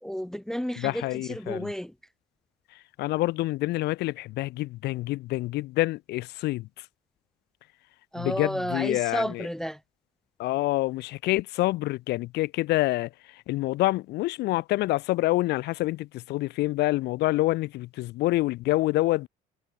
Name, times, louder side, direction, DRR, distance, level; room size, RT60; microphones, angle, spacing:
voice 1, 0.0-2.0 8.1-9.8, equal, 5° left, 0.6 m, -32 dB
voice 2, 0.8-1.7 3.0-6.7 8.2-9.5 10.4-19.3, left 18 dB, 75° left, 0.6 m, -27 dB
cardioid pair, 110°, 17 cm